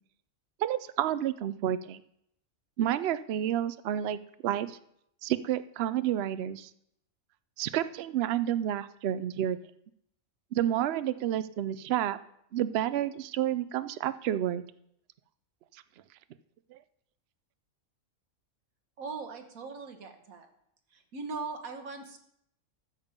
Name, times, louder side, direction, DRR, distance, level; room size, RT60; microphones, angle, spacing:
voice 1, 0.6-2.0 2.8-4.8 5.2-6.7 7.6-9.6 10.5-12.2 12.5-14.6 16.7-16.8, right 11 dB, 60° right, 14 dB, 0.7 m, -30 dB
voice 2, 19.0-20.5 20.9-22.2, right 4 dB, 80° right, 5 dB, 1.7 m, -40 dB
13.5 x 7.2 x 5.2 m, 0.74 s
omnidirectional pair, 1.5 m